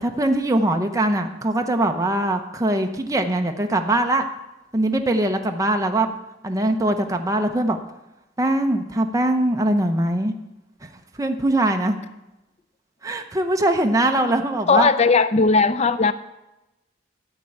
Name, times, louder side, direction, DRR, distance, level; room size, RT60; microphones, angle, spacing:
voice 1, 0.0-4.2 4.7-6.1 6.4-7.8 8.4-10.3 11.2-12.0 13.0-14.9, right 1 dB, 20° right, 0.8 m, -21 dB
voice 2, 14.7-16.1, left 4 dB, 35° left, 0.5 m, -17 dB
13.5 x 4.6 x 8.6 m
head